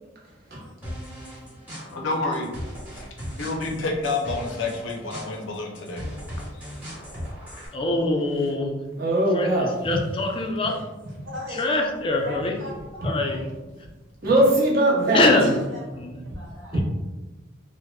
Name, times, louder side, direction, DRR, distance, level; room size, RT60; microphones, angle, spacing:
sound 1, 0.8-7.7, equal, 10° right, 1.0 m, -38 dB
voice 1, 1.9-2.5 2.9-3.1 3.4-6.0, left 3 dB, 80° left, 1 dB, 0.5 m, -28 dB
voice 2, 7.7-8.7 9.3-10.8 11.6-12.5 13.0-13.4 15.1-15.5 16.0-16.2 16.7-16.8, left 2 dB, 30° left, 2 dB, 0.3 m, -23 dB
voice 3, 9.0-10.0 11.2-11.3 14.2-15.3 16.7-16.8, right 1 dB, 55° right, -3 dB, 0.7 m, -21 dB
voice 4, 11.2-11.7 12.2-13.5 15.1-16.0 16.3-16.8, left 1 dB, 90° right, -5 dB, 1.0 m, -40 dB
2.9 x 2.0 x 2.2 m, 1.1 s
head